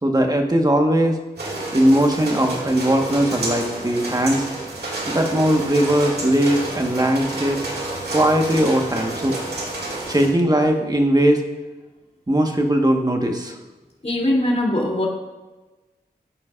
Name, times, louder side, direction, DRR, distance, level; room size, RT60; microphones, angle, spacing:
voice 1, 0.0-1.2 1.7-4.4 5.1-7.6 8.1-9.4 10.1-11.4 12.3-13.6, right 1 dB, 25° right, 3 dB, 1.5 m, -19 dB
sound 1, 1.4-10.3, right 2 dB, 75° right, 2.3 m, -30 dB
voice 2, 14.0-15.1, left 1 dB, 40° left, -2 dB, 3.1 m, -21 dB
14.5 x 9.0 x 2.6 m, 1.1 s
cardioid pair, 45°, 17 cm